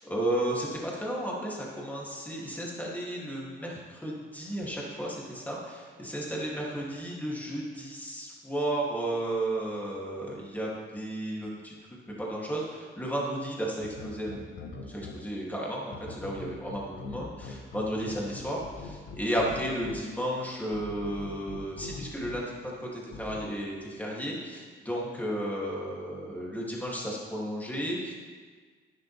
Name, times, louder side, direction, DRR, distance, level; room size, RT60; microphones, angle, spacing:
voice 1, 0.0-11.7 12.2-28.1, right 1 dB, 10° left, -4 dB, 2.8 m, -33 dB
sound 1, 13.8-15.1 15.9-19.9 20.7-22.3 23.1-23.4, left 5 dB, 75° left, 1.5 m, -41 dB
11.5 x 10.0 x 3.5 m, 1.5 s
cardioid pair, 90°, 20 cm